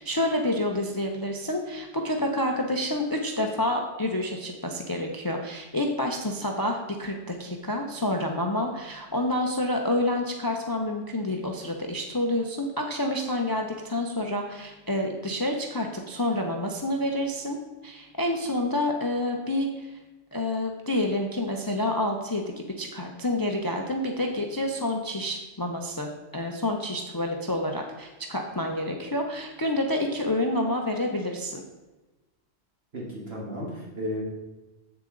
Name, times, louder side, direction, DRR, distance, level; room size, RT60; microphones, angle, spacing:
voice 1, 0.0-17.6 17.8-20.0 20.3-31.6, left 1 dB, 25° left, 2 dB, 0.5 m, -28 dB
voice 2, 32.9-34.2, equal, 55° right, -4 dB, 1.9 m, -34 dB
8.0 x 6.9 x 3.8 m, 1.1 s
omnidirectional pair, 1.3 m